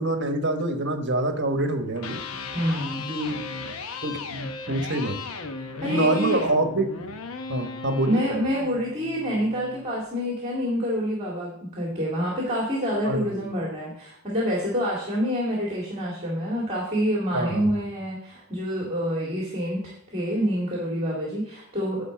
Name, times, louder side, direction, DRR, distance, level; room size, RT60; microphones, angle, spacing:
voice 1, 0.0-2.2 3.1-3.4 4.0-5.2 5.8-6.9 7.5-8.2 13.0-13.2 17.3-17.7, right 2 dB, 55° right, 6 dB, 1.3 m, -26 dB
Electric guitar, 1.8-9.9, left 4 dB, 75° left, 0.9 m, -36 dB
voice 2, 2.5-3.1 5.6-6.5 8.1-22.0, equal, 30° right, -3 dB, 2.2 m, -27 dB
10.5 x 4.2 x 7.5 m, 0.71 s
head